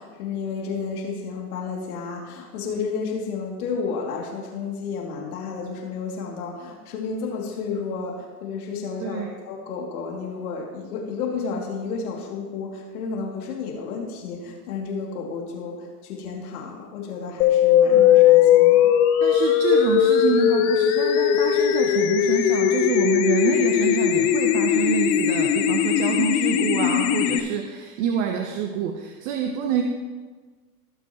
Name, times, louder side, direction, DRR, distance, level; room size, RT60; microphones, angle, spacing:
voice 1, 0.0-18.8, left 5 dB, 70° left, -1 dB, 3.1 m, -31 dB
sound 1, 17.4-27.4, left 10 dB, 50° left, 1.1 m, -19 dB
voice 2, 19.2-29.8, right 7 dB, 50° right, 3 dB, 1.2 m, -27 dB
19.0 x 6.9 x 3.2 m, 1.4 s
hypercardioid pair, 115°, 46 cm